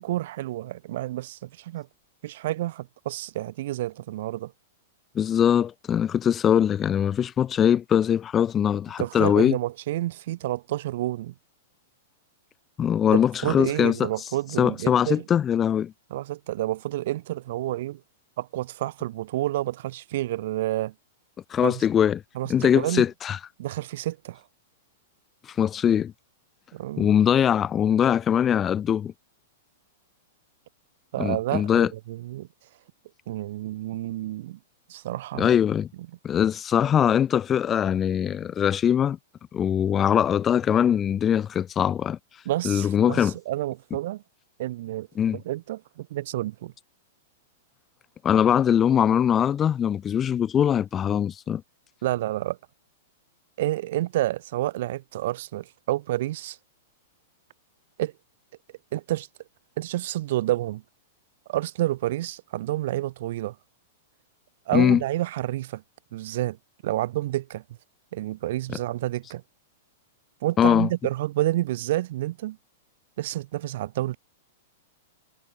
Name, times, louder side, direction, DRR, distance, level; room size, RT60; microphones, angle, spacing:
voice 1, 0.0-1.9 2.2-4.5 9.0-11.3 13.1-15.2 16.1-18.0 18.4-20.9 21.6-21.8 22.3-23.1 23.6-24.4 26.7-27.1 31.1-32.5 33.3-34.6 34.9-35.5 42.4-44.2 44.6-45.1 45.3-46.7 52.0-52.6 53.6-56.6 58.0-58.1 58.9-59.3 59.8-60.8 61.5-63.6 64.7-65.8 66.1-66.6 66.8-67.6 68.1-69.4 70.4-72.6 73.2-74.2, right 15 dB, 55° right, 1.5 m, -29 dB
voice 2, 5.2-9.6 12.8-14.1 14.6-15.9 21.5-22.2 22.5-23.4 25.5-26.1 27.0-29.1 31.2-31.9 35.4-35.9 36.2-39.2 39.5-42.2 42.6-43.3 45.2-45.4 48.2-51.6 64.7-65.0 70.6-70.9, left 9 dB, 20° left, 0.3 m, -22 dB
figure-of-eight pair, 100°, 0 cm